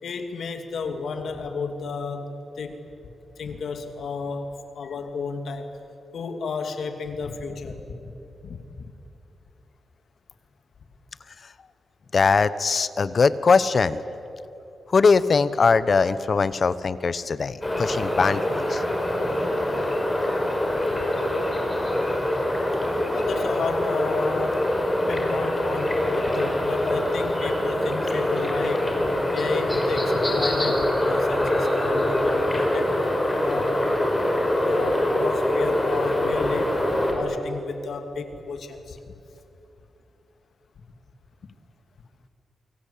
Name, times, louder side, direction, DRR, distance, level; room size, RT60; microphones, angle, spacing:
voice 1, 0.0-2.8 3.4-5.7 6.1-8.1 8.4-8.9 20.9-21.0 23.1-24.7 25.1-33.0 33.4-33.8 34.6-39.0, left 4 dB, 75° left, 6 dB, 2.6 m, -32 dB
voice 2, 12.1-14.0 14.9-18.8, left 4 dB, 45° left, 15 dB, 1.0 m, -21 dB
sound 1, 17.6-37.1, left 1 dB, 15° left, 5.4 m, -24 dB
28.5 x 24.0 x 8.6 m, 2.9 s
wide cardioid pair, 125°, 0 cm